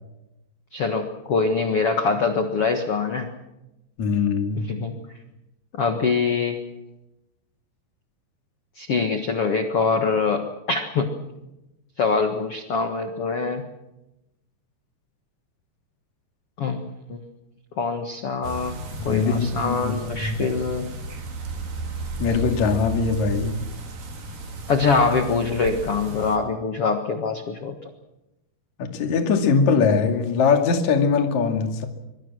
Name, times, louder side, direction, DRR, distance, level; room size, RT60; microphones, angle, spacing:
voice 1, 0.7-3.3 4.6-4.9 5.8-6.6 8.8-11.1 12.0-13.6 16.6-17.2 17.8-18.8 19.0-20.9 24.7-27.7, left 4 dB, 85° left, 5 dB, 1.3 m, -24 dB
voice 2, 4.0-4.6 19.0-20.4 22.2-23.6 28.8-31.9, left 5 dB, 45° left, 4 dB, 3.2 m, -21 dB
sound 1, 18.4-26.4, right 2 dB, 50° right, 4.6 m, -34 dB
25.0 x 23.5 x 6.3 m, 0.94 s
omnidirectional pair, 5.4 m